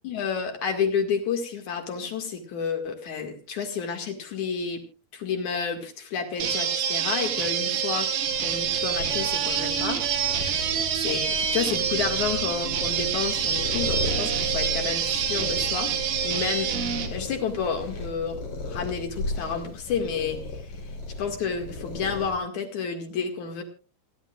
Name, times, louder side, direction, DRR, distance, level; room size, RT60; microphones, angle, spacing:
voice 1, 0.0-4.8 5.1-8.1 8.4-10.0 10.4-10.7 11.0-15.9 16.2-16.7 17.1-18.4 18.7-20.7 21.2-23.6, left 6 dB, 55° left, 5 dB, 3.2 m, -30 dB
sound 1, 6.4-17.1, right 8 dB, 90° right, 3.8 m, -27 dB
sound 2, 8.2-22.4, left 2 dB, 75° left, 6.9 m, -36 dB
26.5 x 11.0 x 2.4 m, 0.32 s
omnidirectional pair, 4.3 m